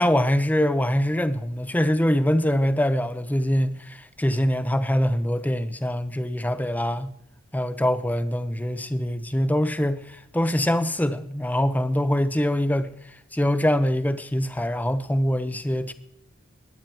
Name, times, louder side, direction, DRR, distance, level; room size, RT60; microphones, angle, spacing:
voice 1, 0.0-7.1 7.5-12.9 13.3-15.9, equal, 5° left, 0.6 m, -24 dB
20.5 x 9.3 x 4.5 m
head